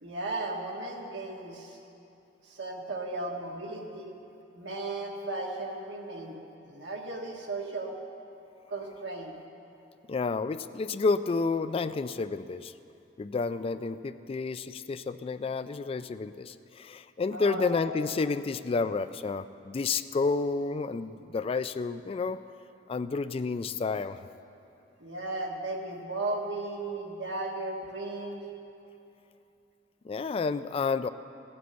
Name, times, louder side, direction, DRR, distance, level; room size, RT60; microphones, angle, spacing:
voice 1, 0.0-1.8 2.4-4.1 4.5-6.3 6.6-7.9 8.7-9.4 17.3-18.1 25.0-28.4, right 2 dB, 80° right, 0 dB, 1.7 m, -35 dB
voice 2, 10.1-12.7 13.2-22.4 22.9-24.2 30.0-31.1, left 4 dB, 30° left, 13 dB, 0.3 m, -30 dB
15.5 x 7.7 x 8.0 m, 2.8 s
head